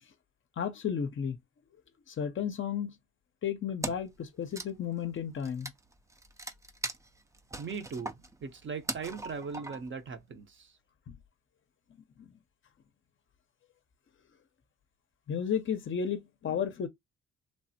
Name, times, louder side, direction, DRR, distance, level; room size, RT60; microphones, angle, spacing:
voice 1, 0.6-1.4 2.1-2.9 3.4-5.7 11.1-11.2 12.2-12.3 15.3-16.9, left 7 dB, 40° left, 0.5 m, -33 dB
Wood, 3.8-4.2 4.4-10.0, right 2 dB, 10° right, 0.3 m, -40 dB
voice 2, 7.6-10.7, right 5 dB, 40° right, 0.7 m, -39 dB
3.3 x 2.0 x 2.6 m
cardioid pair, 90°, 30 cm